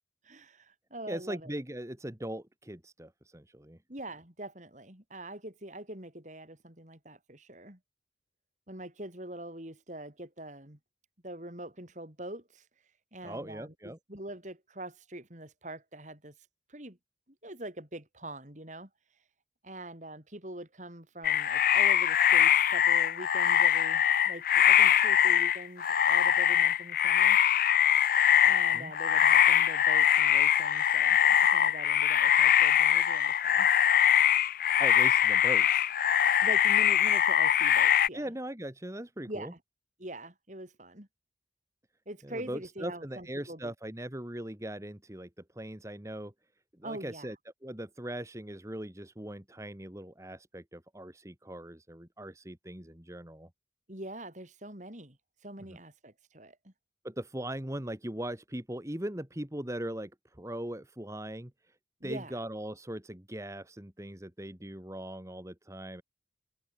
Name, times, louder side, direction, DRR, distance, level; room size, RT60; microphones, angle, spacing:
voice 1, 0.2-1.5 3.9-7.8 8.7-10.8 11.2-12.6 13.1-16.3 16.7-17.0 17.4-18.9 19.6-27.4 28.4-33.7 36.4-38.3 39.3-39.6 40.0-41.1 42.1-43.7 46.8-47.3 53.9-55.2 55.4-56.7 62.0-62.4, right 1 dB, 40° right, 4.8 m, -44 dB
voice 2, 1.1-3.8 13.2-14.0 28.7-28.9 34.8-35.9 38.1-39.5 42.2-45.3 45.5-46.3 46.8-47.3 47.6-53.5 55.7-55.8 57.0-61.7 62.0-66.0, right 1 dB, 15° right, 1.6 m, -40 dB
sound 1, 21.2-38.1, left 10 dB, 50° left, 0.5 m, -23 dB
head